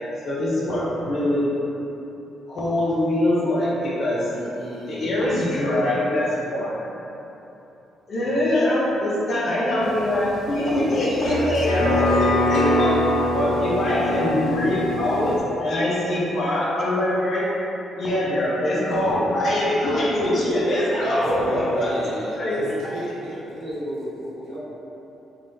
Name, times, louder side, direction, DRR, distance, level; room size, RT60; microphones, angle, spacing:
voice 1, 0.2-1.4 2.5-4.3 4.9-6.8 8.1-12.9 13.3-17.5 17.9-21.9 22.3-22.5 22.8-22.9, left 1 dB, 50° left, -6 dB, 1.0 m, -23 dB
voice 2, 4.3-5.2 11.5-11.6 21.0-23.6 24.4-24.5, right 1 dB, 85° right, -7 dB, 0.9 m, -37 dB
voice 3, 8.2-8.7 20.4-20.6 20.9-21.2 23.6-24.6, equal, 60° right, -8 dB, 1.3 m, -32 dB
sound 1, 9.8-15.4, left 1 dB, 80° left, 0.6 m, -24 dB
3.7 x 2.6 x 3.4 m, 3.0 s
cardioid pair, 90°, 0 cm